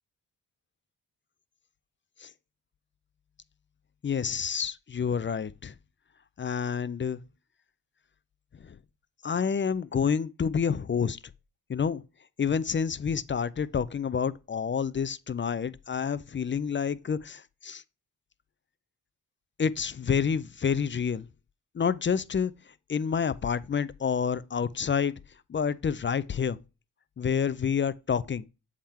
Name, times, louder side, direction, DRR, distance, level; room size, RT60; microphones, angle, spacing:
voice 1, 4.0-5.7 6.4-7.2 8.6-8.8 9.2-11.2 11.7-12.0 12.4-17.8 19.6-21.3 21.7-22.5 22.9-25.1 25.5-26.6 27.2-28.5, left 6 dB, 30° left, 0.4 m, -28 dB
7.3 x 3.6 x 4.3 m
cardioid pair, 50°, 42 cm